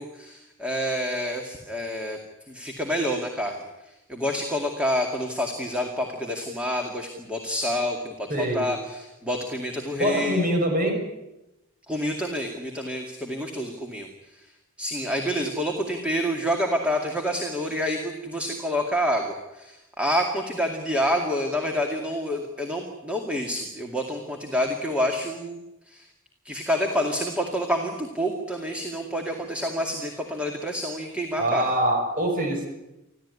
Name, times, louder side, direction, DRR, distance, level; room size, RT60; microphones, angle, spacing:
voice 1, 0.0-2.2 2.5-3.6 4.1-10.6 11.9-14.1 14.8-26.1 26.4-31.7, equal, 5° right, 2 dB, 2.3 m, -28 dB
voice 2, 8.3-8.7 9.9-11.0 31.4-32.7, right 1 dB, 40° right, 3 dB, 6.3 m, -24 dB
26.5 x 15.5 x 9.7 m, 0.95 s
head